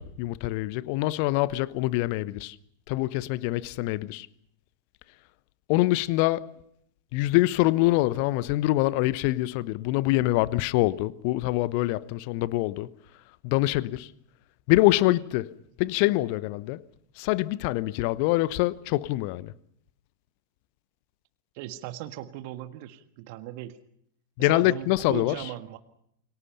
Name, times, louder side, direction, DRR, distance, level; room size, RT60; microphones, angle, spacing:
voice 1, 0.0-2.6 2.9-4.3 5.7-6.5 7.1-12.9 13.4-14.1 14.7-16.8 17.2-19.5 24.4-25.4, left 18 dB, 45° left, 0.9 m, -25 dB
voice 2, 21.5-23.8 24.4-25.8, right 14 dB, 45° right, 1.6 m, -38 dB
29.0 x 23.5 x 5.6 m
figure-of-eight pair, 90°, 0 cm